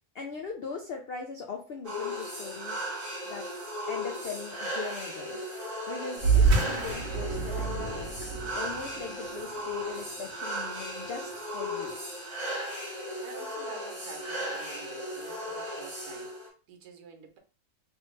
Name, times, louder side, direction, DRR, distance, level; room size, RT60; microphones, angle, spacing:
voice 1, 0.1-2.9 3.2-3.5 3.9-5.4 5.7-8.1 8.6-12.0, left 5 dB, 80° left, 3 dB, 0.5 m, -40 dB
sound 1, 1.8-16.5, equal, 30° right, 1.0 m, -36 dB
sound 2, 6.2-11.1, right 4 dB, 60° right, 1.0 m, -28 dB
voice 2, 13.2-17.4, right 6 dB, 80° right, 5 dB, 1.3 m, -48 dB
3.1 x 2.7 x 3.1 m, 0.36 s
omnidirectional pair, 1.6 m